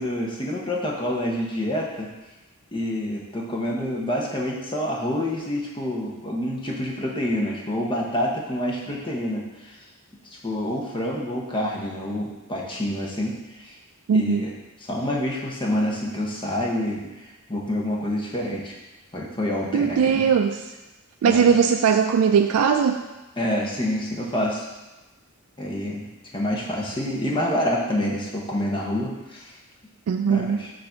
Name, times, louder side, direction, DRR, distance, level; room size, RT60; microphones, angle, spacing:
voice 1, 0.0-2.1 2.7-9.8 10.3-13.8 14.1-14.5 14.8-18.8 19.1-20.3 21.2-21.5 23.4-24.7 25.6-29.6 30.2-30.7, left 1 dB, 20° left, -1 dB, 0.8 m, -27 dB
voice 2, 14.1-14.5 19.7-20.6 21.2-23.0 30.1-30.6, right 6 dB, 80° right, 6 dB, 0.3 m, -19 dB
6.6 x 2.6 x 5.6 m, 1.1 s
head